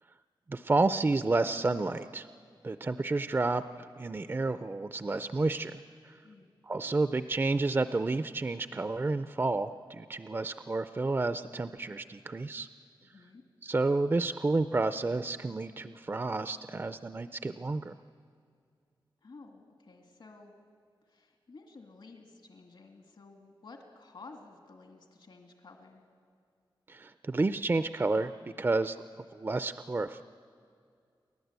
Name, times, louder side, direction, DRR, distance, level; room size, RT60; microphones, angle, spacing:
voice 1, 0.5-2.3 2.6-3.6 4.0-6.1 6.6-12.7 13.6-17.9 26.9-28.3 28.6-29.0 29.3-30.2, right 3 dB, 25° right, 11 dB, 0.4 m, -30 dB
voice 2, 13.0-13.4 19.2-20.6 21.1-26.0, left 3 dB, 65° left, 3 dB, 2.4 m, -53 dB
29.0 x 11.5 x 8.1 m, 2.3 s
wide cardioid pair, 115°, 9 cm